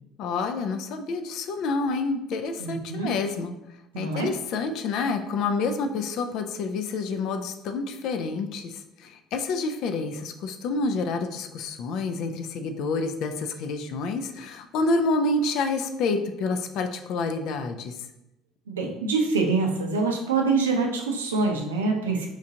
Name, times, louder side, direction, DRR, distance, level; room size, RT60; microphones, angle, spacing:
voice 1, 0.2-3.5 3.9-17.9, left 3 dB, 65° left, 7 dB, 0.4 m, -28 dB
voice 2, 2.6-3.1 3.9-4.3 18.7-22.3, right 4 dB, 90° right, 3 dB, 0.5 m, -25 dB
4.4 x 2.4 x 2.7 m, 0.89 s
hypercardioid pair, 65°, 0 cm